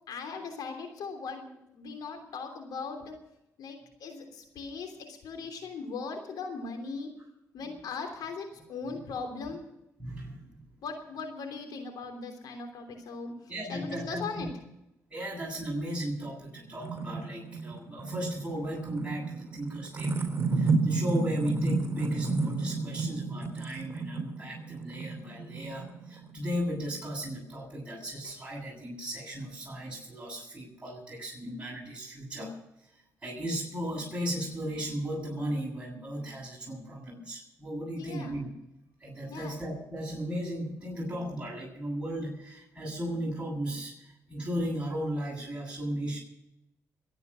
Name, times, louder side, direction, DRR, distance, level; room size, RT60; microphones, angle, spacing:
voice 1, 0.1-3.1 3.6-7.1 7.5-9.6 10.8-13.3 13.7-14.5 38.0-38.3 39.3-39.6, left 4 dB, 75° left, 5 dB, 3.3 m, -39 dB
voice 2, 10.0-10.6 13.5-14.5 15.1-20.3 20.6-32.5 33.2-38.6 39.0-43.9 44.3-46.2, equal, 15° right, -4 dB, 8.0 m, -36 dB
sound 1, 16.2-26.3, right 3 dB, 35° right, 4.0 m, -32 dB
23.0 x 9.4 x 6.4 m, 0.86 s
supercardioid pair, 60°, 7 cm